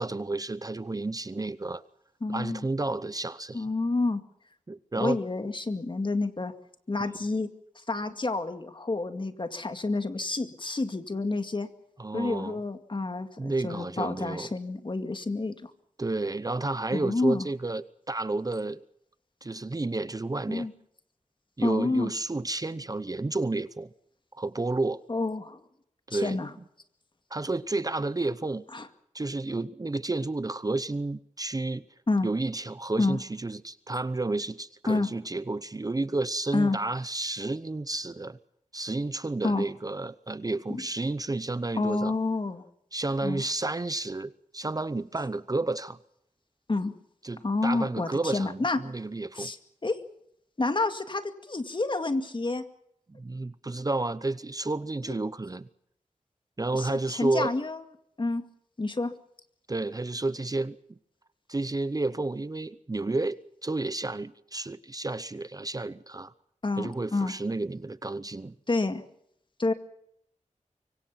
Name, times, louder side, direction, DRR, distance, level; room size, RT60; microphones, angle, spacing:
voice 1, 0.0-1.8 2.3-3.7 4.7-5.2 12.0-12.6 13.4-14.5 16.0-18.8 19.4-20.7 21.6-23.9 24.3-25.0 26.1-26.4 27.3-28.6 29.1-31.8 32.2-38.4 38.7-42.1 42.9-46.0 47.2-49.5 53.1-55.7 56.6-57.5 59.7-60.8 61.5-63.4 63.6-66.3 66.8-68.5, right 2 dB, 30° right, 15 dB, 0.8 m, -31 dB
voice 2, 2.2-2.7 3.5-4.2 5.0-6.5 6.9-7.5 7.9-11.7 12.1-15.7 16.9-17.5 20.5-20.7 21.6-22.1 25.1-25.6 26.1-26.5 28.7-28.9 32.1-32.3 33.0-33.2 34.9-35.1 36.5-36.8 39.4-39.7 40.7-40.8 41.8-42.6 43.2-43.4 46.7-46.9 47.4-48.8 49.4-49.6 49.8-50.0 50.6-52.6 55.1-55.2 56.7-57.8 58.2-58.5 58.8-59.1 66.6-67.3 68.7-69.0 69.6-69.7, left 3 dB, 40° left, 8 dB, 2.2 m, -29 dB
25.5 x 23.5 x 5.8 m, 0.75 s
wide cardioid pair, 85°, 13 cm